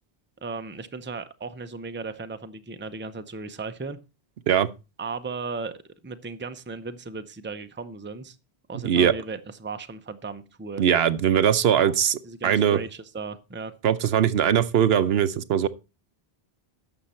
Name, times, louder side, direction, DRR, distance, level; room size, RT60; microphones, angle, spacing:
voice 1, 0.4-4.0 5.0-5.7 6.0-8.4 8.7-10.8 11.8-11.9 12.2-13.7, right 4 dB, 15° right, 0.6 m, -36 dB
voice 2, 10.8-12.8 13.8-15.7, right 9 dB, 75° right, 0.9 m, -21 dB
11.5 x 7.1 x 4.3 m
omnidirectional pair, 1.1 m